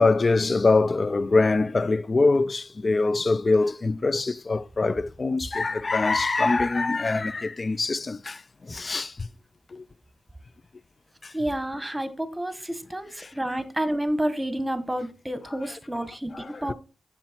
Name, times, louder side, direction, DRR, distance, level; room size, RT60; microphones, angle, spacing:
voice 1, 0.0-9.3 9.7-9.8 11.2-11.3 16.3-16.4, left 3 dB, 40° left, 0.4 m, -23 dB
voice 2, 11.3-16.7, right 1 dB, 10° right, 1.4 m, -29 dB
7.4 x 6.4 x 4.5 m
cardioid pair, 55°, 0 cm